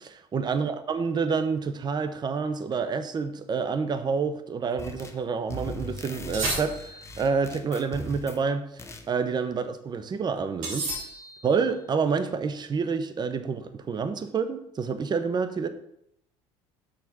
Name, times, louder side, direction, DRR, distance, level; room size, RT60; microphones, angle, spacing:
voice 1, 0.0-8.7 9.1-10.9 11.4-15.7, right 5 dB, 30° right, 10 dB, 0.7 m, -28 dB
sound 1, 4.8-5.2 5.5-8.4 8.8-9.1, left 1 dB, 20° left, 0.8 m, -39 dB
sound 2, 6.3-7.2 10.6-11.6, right 2 dB, 70° right, 2.5 m, -32 dB
6.4 x 4.1 x 6.0 m, 0.75 s
supercardioid pair, 85°, 14 cm